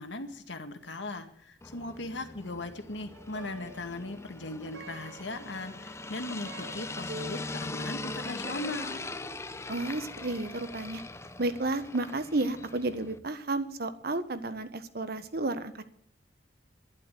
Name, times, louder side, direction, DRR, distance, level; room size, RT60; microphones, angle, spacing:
voice 1, 0.0-9.0, left 2 dB, 85° left, 6 dB, 2.0 m, -38 dB
sound 1, 1.6-13.2, left 2 dB, 15° left, 0.7 m, -41 dB
Plucked string instrument, 3.1-12.6, right 2 dB, 80° right, 1.7 m, -50 dB
voice 2, 9.7-11.0 11.4-15.8, right 2 dB, 60° right, 11 dB, 1.3 m, -32 dB
12.0 x 11.5 x 9.4 m, 0.69 s
head